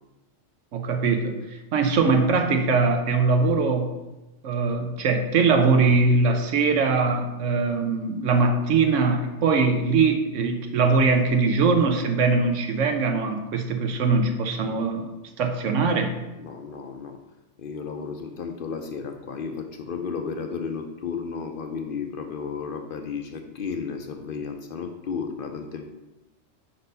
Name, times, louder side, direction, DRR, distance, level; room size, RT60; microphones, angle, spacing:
voice 1, 0.7-4.0 4.4-15.1 15.4-16.1, right 4 dB, 90° right, 5 dB, 1.1 m, -22 dB
voice 2, 16.4-17.2 17.6-25.9, left 5 dB, 60° left, 5 dB, 0.6 m, -33 dB
5.3 x 4.2 x 5.4 m, 1.0 s
omnidirectional pair, 1.3 m